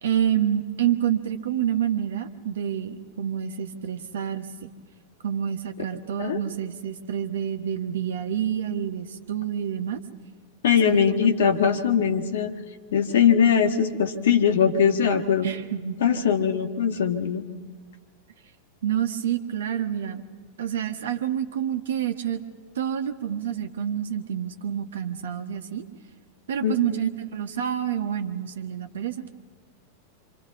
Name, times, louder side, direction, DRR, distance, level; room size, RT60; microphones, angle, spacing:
voice 1, 0.0-4.7 5.2-10.0 10.9-11.3 15.4-16.0 18.8-20.2 20.6-22.4 22.7-25.8 26.5-29.2, right 9 dB, 60° right, 8 dB, 1.4 m, -28 dB
voice 2, 10.6-12.5 12.9-15.5 16.0-17.4 26.6-27.0, left 7 dB, 60° left, 7 dB, 1.6 m, -21 dB
28.0 x 25.5 x 4.2 m, 1.5 s
figure-of-eight pair, 90°, 0 cm